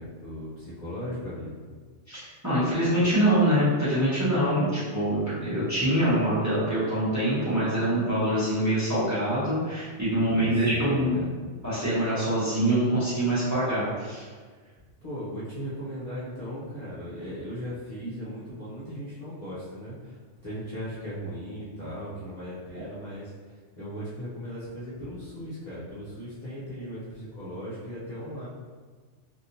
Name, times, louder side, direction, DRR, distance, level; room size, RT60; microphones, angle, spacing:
voice 1, 0.0-1.6 10.2-11.3 15.0-20.2 20.4-28.5, equal, 40° left, -12 dB, 0.8 m, -37 dB
voice 2, 2.1-11.2 11.6-14.2, right 1 dB, 15° right, -11 dB, 1.0 m, -25 dB
3.4 x 2.7 x 2.7 m, 1.5 s
omnidirectional pair, 1.3 m